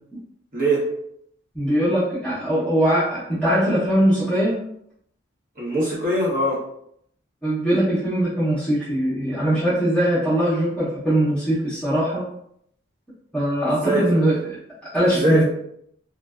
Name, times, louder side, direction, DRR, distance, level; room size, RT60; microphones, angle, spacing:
voice 1, 0.5-0.9 5.6-6.6 13.6-14.2 15.0-15.4, right 1 dB, 50° right, -5 dB, 0.9 m, -22 dB
voice 2, 1.5-4.6 7.4-12.2 13.3-14.3 14.9-15.4, right 1 dB, 5° left, -11 dB, 0.7 m, -21 dB
2.6 x 2.1 x 2.3 m, 0.71 s
head